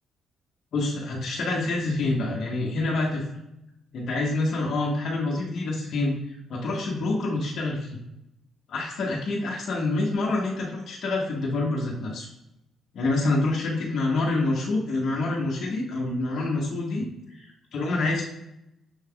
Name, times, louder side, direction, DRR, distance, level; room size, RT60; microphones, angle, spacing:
voice 1, 0.7-3.2 3.9-6.1 6.5-8.0 8.7-12.3 12.9-18.2, left 2 dB, 65° left, -3 dB, 0.9 m, -27 dB
6.3 x 3.3 x 2.3 m, 0.86 s
cardioid pair, 90°, 0 cm